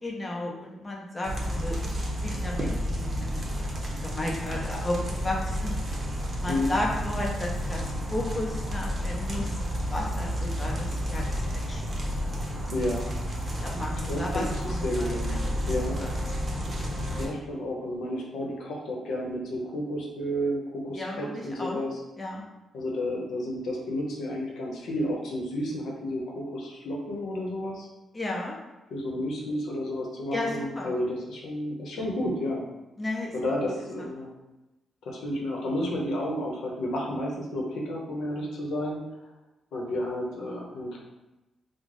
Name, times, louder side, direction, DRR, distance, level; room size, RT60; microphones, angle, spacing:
voice 1, 0.0-5.7 6.4-9.6 9.9-11.2 11.7-11.8 13.6-15.6 16.0-16.1 20.9-21.8 22.2-22.4 28.1-28.6 30.3-30.9 33.0-33.3, left 1 dB, 25° left, -2 dB, 0.7 m, -34 dB
sound 1, 1.2-17.3, equal, 35° right, 0.7 m, -31 dB
voice 2, 12.7-13.1 14.1-14.4 14.8-15.4 15.7-16.0 17.2-21.9 22.7-27.9 28.9-32.6 33.3-34.3 35.0-39.0 39.7-41.0, left 1 dB, 80° left, -2 dB, 0.7 m, -31 dB
3.2 x 2.0 x 3.7 m, 1.0 s
cardioid pair, 90°, 0 cm